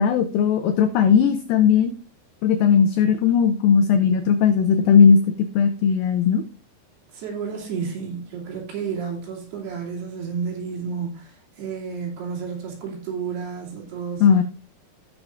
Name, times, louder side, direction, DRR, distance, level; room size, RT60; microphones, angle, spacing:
voice 1, 0.0-1.9 2.4-5.2 5.5-6.4 14.2-14.4, left 6 dB, 85° left, 2.0 m, -17 dB
voice 2, 7.1-14.3, right 6 dB, 70° right, 4.5 m, -31 dB
17.5 x 6.2 x 2.5 m
omnidirectional pair, 4.8 m